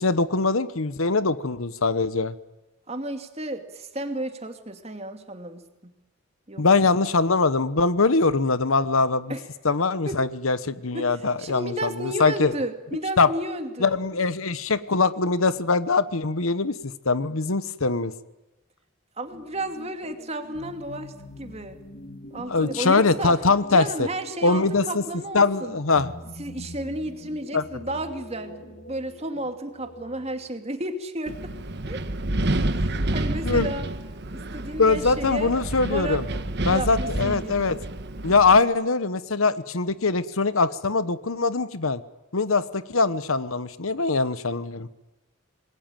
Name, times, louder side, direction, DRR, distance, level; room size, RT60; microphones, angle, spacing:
voice 1, 0.0-2.3 6.6-9.3 9.6-12.5 13.2-13.3 13.8-16.7 17.0-18.1 22.5-24.1 24.4-25.0 25.3-26.1 27.5-27.6 33.4-33.7 34.8-36.2 36.6-37.8 38.2-42.0 42.3-44.9, left 3 dB, 75° left, 14 dB, 1.1 m, -22 dB
voice 2, 2.9-5.9 6.5-6.7 9.3-9.4 10.1-10.2 10.9-14.0 19.2-21.1 21.4-21.8 22.3-23.4 23.7-25.8 26.4-31.5 31.9-32.0 32.7-33.9 34.3-35.5 35.9-36.2 36.7-37.8, right 1 dB, 30° right, 7 dB, 2.5 m, -33 dB
sound 1, 19.2-30.5, left 1 dB, 50° left, 2.3 m, -44 dB
Wind, 31.3-38.6, right 1 dB, 50° right, 1.4 m, -29 dB
27.5 x 21.0 x 9.1 m, 1.0 s
head